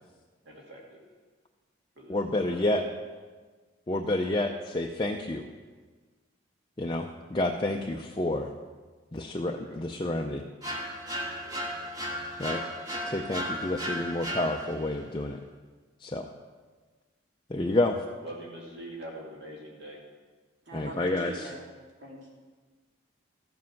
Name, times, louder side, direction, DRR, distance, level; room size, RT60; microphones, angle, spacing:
voice 1, 0.4-1.0 2.0-3.0 9.6-9.8 11.4-11.7 13.6-13.7 18.2-20.0, right 1 dB, 55° right, -2 dB, 2.4 m, -44 dB
voice 2, 2.1-2.8 3.9-5.4 6.8-8.5 9.1-10.4 12.4-12.6 13.0-15.4 16.0-16.3 17.5-18.0 20.7-21.5, left 2 dB, 25° left, 1 dB, 0.5 m, -29 dB
sound 1, 10.6-15.0, equal, 20° right, 1.4 m, -35 dB
voice 3, 20.6-21.6 22.0-22.3, right 1 dB, 75° right, -3 dB, 3.0 m, -43 dB
13.5 x 7.5 x 5.9 m, 1.4 s
head